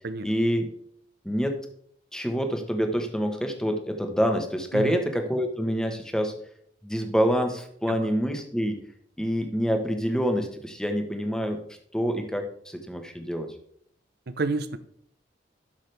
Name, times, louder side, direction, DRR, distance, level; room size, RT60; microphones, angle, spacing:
voice 1, 0.2-0.6 1.2-1.6 2.1-6.3 6.8-8.8 9.2-11.6 11.9-13.5, equal, 5° left, 5 dB, 1.1 m, -26 dB
voice 2, 14.3-14.8, right 3 dB, 55° right, 13 dB, 0.6 m, -30 dB
12.0 x 6.2 x 3.3 m, 0.64 s
head